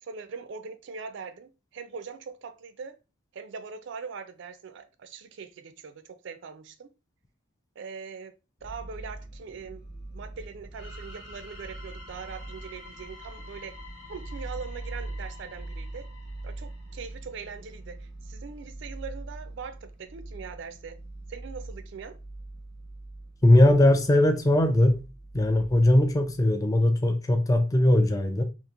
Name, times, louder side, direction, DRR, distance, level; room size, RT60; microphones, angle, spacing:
voice 1, 0.0-3.0 3.3-6.9 7.8-8.3 8.6-9.8 10.1-13.8 14.1-16.1 16.4-21.0 21.3-22.2, right 5 dB, 60° right, 0.3 m, -41 dB
sound 1, 8.6-26.5, right 2 dB, 45° left, 1.0 m, -42 dB
sound 2, 10.7-17.4, left 2 dB, 70° left, 1.1 m, -49 dB
voice 2, 23.4-25.0 25.3-28.4, left 1 dB, 15° left, 0.3 m, -20 dB
2.9 x 2.4 x 2.4 m
head